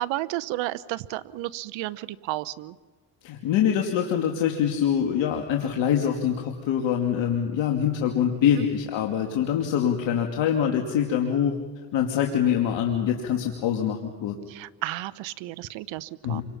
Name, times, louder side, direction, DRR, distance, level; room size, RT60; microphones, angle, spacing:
voice 1, 0.0-2.8 8.6-8.7 14.5-16.4, right 17 dB, 80° right, 16 dB, 1.0 m, -32 dB
voice 2, 3.2-11.5 11.9-14.4 16.2-16.4, left 9 dB, 75° left, 2 dB, 2.7 m, -24 dB
29.5 x 25.0 x 5.8 m, 1.3 s
supercardioid pair, 70°, 45 cm